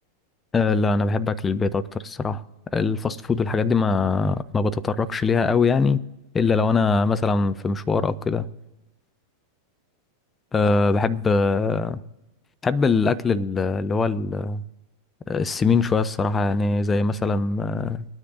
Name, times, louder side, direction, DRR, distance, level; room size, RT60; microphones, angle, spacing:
voice 1, 0.5-2.4 2.7-6.0 6.3-8.5 10.5-12.0 12.6-14.6 15.3-18.1, left 4 dB, 15° left, 0.5 m, -22 dB
23.5 x 9.8 x 2.6 m
figure-of-eight pair, 90°, 0 cm